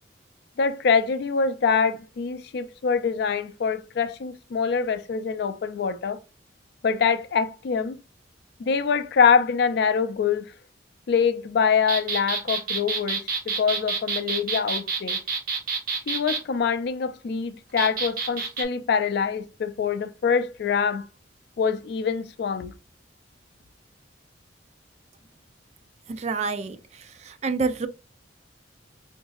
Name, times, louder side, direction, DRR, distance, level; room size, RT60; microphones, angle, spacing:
voice 1, 0.6-6.2 6.8-7.9 8.6-10.5 11.1-15.2 16.1-21.0 21.6-22.7, left 6 dB, 60° left, 0.3 m, -24 dB
sound 1, 11.9-16.4 17.8-18.6, right 4 dB, 55° right, 0.8 m, -28 dB
voice 2, 26.1-26.8 27.2-27.9, right 4 dB, 35° right, 0.3 m, -27 dB
3.8 x 2.6 x 2.3 m
head